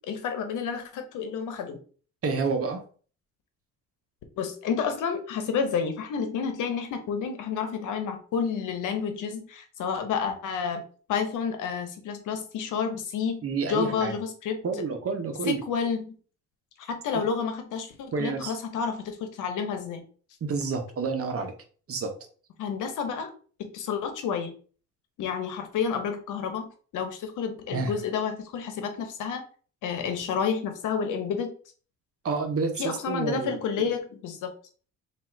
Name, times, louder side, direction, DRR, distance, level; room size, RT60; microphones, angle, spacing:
voice 1, 0.1-1.8 4.4-10.8 11.1-14.6 15.5-16.1 16.8-20.0 22.6-23.3 23.6-24.5 25.2-29.4 29.8-31.5 32.8-34.5, left 6 dB, 85° left, 7 dB, 1.0 m, -30 dB
voice 2, 2.2-2.8 13.4-14.1 14.6-15.6 17.1-17.2 18.1-18.6 20.4-21.5 21.9-22.1 27.7-27.9 32.2-33.9, right 4 dB, 50° right, 5 dB, 1.0 m, -29 dB
3.7 x 2.7 x 4.6 m, 0.41 s
cardioid pair, 90°, 30 cm